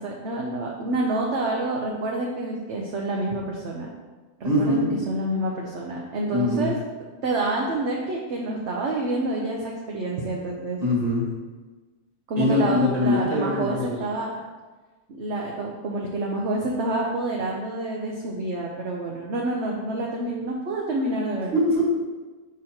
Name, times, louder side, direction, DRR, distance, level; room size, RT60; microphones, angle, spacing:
voice 1, 0.0-3.9 4.4-6.7 7.2-10.8 12.3-14.3 15.2-21.5, right 2 dB, 55° right, -2 dB, 0.9 m, -28 dB
voice 2, 4.4-4.9 6.3-6.7 10.8-11.3 12.4-14.0 21.5-22.0, left 2 dB, 25° right, -4 dB, 1.6 m, -22 dB
6.3 x 6.0 x 2.9 m, 1.3 s
omnidirectional pair, 1.6 m